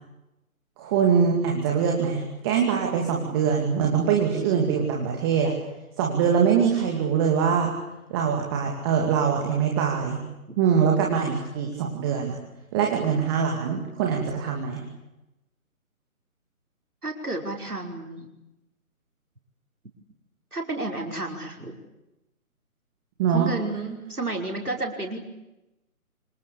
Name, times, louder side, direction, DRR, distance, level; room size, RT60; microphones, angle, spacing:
voice 1, 0.8-5.5 6.0-7.7 8.1-10.2 10.6-12.4 12.7-14.9 23.2-23.5, right 7 dB, 15° right, 0 dB, 2.7 m, -23 dB
voice 2, 17.0-18.3 20.5-21.8 23.3-25.2, right 2 dB, 85° right, 2 dB, 5.4 m, -31 dB
26.0 x 25.5 x 8.6 m, 0.95 s
figure-of-eight pair, 150°, 43 cm